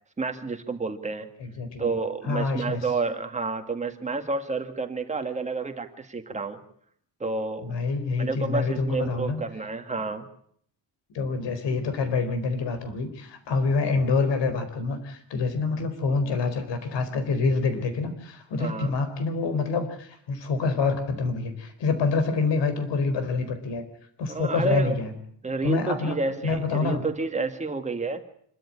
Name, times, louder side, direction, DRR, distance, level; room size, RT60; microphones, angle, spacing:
voice 1, 0.2-1.3 1.8-6.6 7.2-7.7 8.2-10.3 18.6-18.9 24.3-25.0 25.4-28.2, right 3 dB, 15° right, 6 dB, 1.8 m, -30 dB
voice 2, 1.4-1.9 2.3-2.9 7.6-9.4 11.1-23.8 24.2-25.1 25.6-27.0, left 4 dB, 75° left, 9 dB, 4.5 m, -26 dB
26.5 x 13.0 x 9.9 m, 0.66 s
cardioid pair, 175°, 43 cm